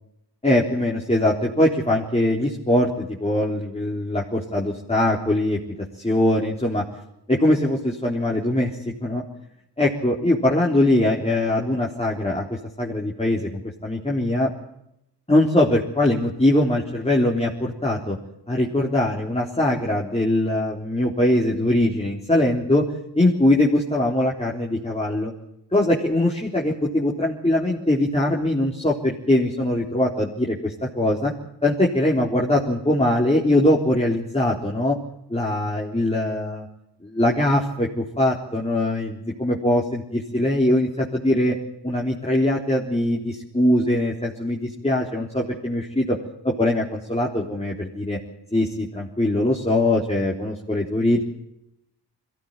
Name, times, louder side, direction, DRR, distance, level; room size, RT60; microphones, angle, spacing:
voice 1, 0.4-5.6 6.0-6.8 7.3-9.2 9.8-14.5 15.3-18.2 18.5-22.9 23.2-25.3 25.7-31.3 31.6-35.0 35.3-36.7 37.0-41.5 41.8-46.2 46.4-48.2 48.5-51.2, left 1 dB, 15° left, -3 dB, 3.8 m, -22 dB
22.0 x 17.0 x 9.0 m, 0.84 s
cardioid pair, 45°, 42 cm